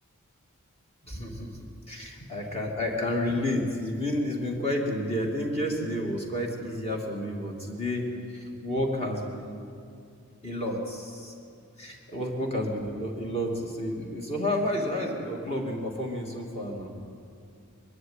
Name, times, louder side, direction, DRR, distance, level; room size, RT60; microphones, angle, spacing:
voice 1, 1.0-1.6 1.9-9.7 10.4-11.3 11.8-17.0, left 1 dB, 30° left, 0 dB, 2.7 m, -30 dB
21.5 x 13.0 x 9.8 m, 2.4 s
head